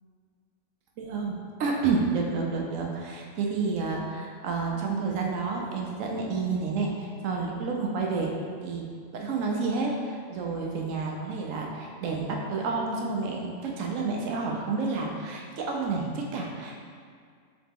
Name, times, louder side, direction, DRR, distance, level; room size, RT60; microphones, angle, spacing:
voice 1, 1.0-8.3 8.6-8.8 9.1-16.8, right 4 dB, 85° right, 0 dB, 1.0 m, -30 dB
4.0 x 2.9 x 3.6 m, 2.1 s
omnidirectional pair, 1.3 m